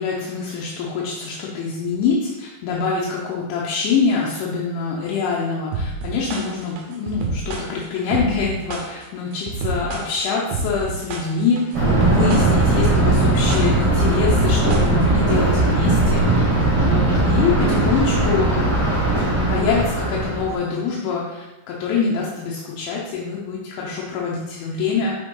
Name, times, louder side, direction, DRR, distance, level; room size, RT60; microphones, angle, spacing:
voice 1, 0.0-16.4 16.7-18.8 19.5-25.2, left 5 dB, 80° left, -4 dB, 3.2 m, -25 dB
sound 1, 5.7-15.3, right 3 dB, 75° right, 2.5 m, -29 dB
Thunder, 11.7-20.5, right 2 dB, 35° right, 3.2 m, -18 dB
7.0 x 6.4 x 3.9 m, 1.1 s
omnidirectional pair, 5.4 m